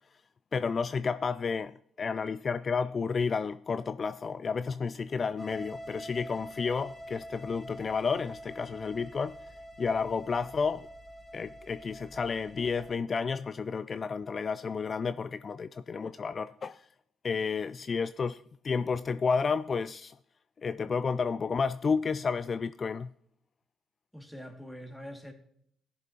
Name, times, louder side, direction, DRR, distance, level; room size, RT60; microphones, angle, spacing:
voice 1, 0.5-9.4 9.8-10.9 11.3-16.9 17.2-20.2 20.6-23.1, left 5 dB, 45° left, 0.3 m, -31 dB
sound 1, 5.4-12.9, equal, 15° right, 2.7 m, -46 dB
voice 2, 24.1-25.3, equal, 5° left, 2.2 m, -44 dB
16.5 x 7.2 x 2.9 m
hypercardioid pair, 45°, 0 cm